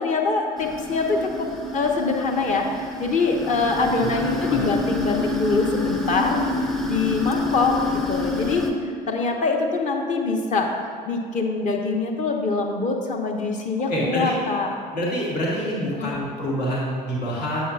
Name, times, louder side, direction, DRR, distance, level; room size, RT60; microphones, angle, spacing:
voice 1, 0.0-6.4 6.9-7.8 8.1-10.7 11.1-14.7 15.9-16.1, left 3 dB, 35° left, 2 dB, 0.8 m, -24 dB
sound 1, 0.6-8.7, left 2 dB, ahead, 0.6 m, -28 dB
voice 2, 4.1-4.7 13.9-14.3 14.9-17.6, equal, 75° left, -5 dB, 1.4 m, -26 dB
8.2 x 7.0 x 2.4 m, 2.2 s
figure-of-eight pair, 60°, 21 cm